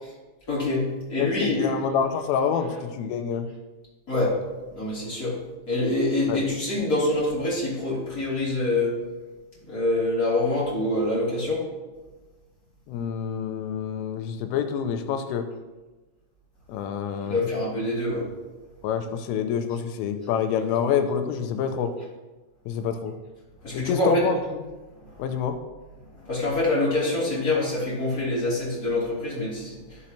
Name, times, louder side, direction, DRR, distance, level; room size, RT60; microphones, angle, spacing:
voice 1, 0.5-1.7 4.1-4.4 4.7-5.4 5.7-8.9 9.7-11.6 17.2-18.2 23.6-24.3 26.2-30.0, left 2 dB, 30° left, -7 dB, 1.9 m, -25 dB
voice 2, 1.2-3.5 6.3-6.5 12.9-15.5 16.7-17.5 18.8-21.9 22.7-23.1 23.7-24.4 25.2-25.6, left 7 dB, 85° left, 7 dB, 3.2 m, -27 dB
13.5 x 6.2 x 2.8 m, 1.2 s
omnidirectional pair, 5.8 m